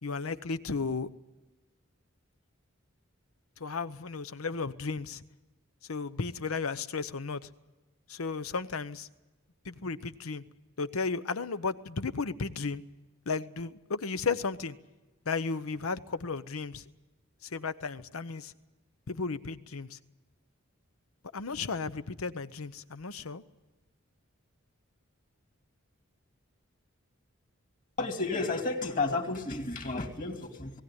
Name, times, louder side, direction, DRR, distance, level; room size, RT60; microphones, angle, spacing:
voice 1, 0.0-1.1 3.6-5.2 5.9-7.5 8.1-9.1 9.6-10.4 10.8-12.8 13.3-14.8 15.3-16.8 17.4-18.5 19.1-20.0 21.3-23.4, left 4 dB, 85° left, 14 dB, 0.9 m, -34 dB
voice 2, 28.0-30.8, left 3 dB, 40° left, 4 dB, 2.5 m, -32 dB
19.0 x 17.5 x 9.9 m, 1.1 s
head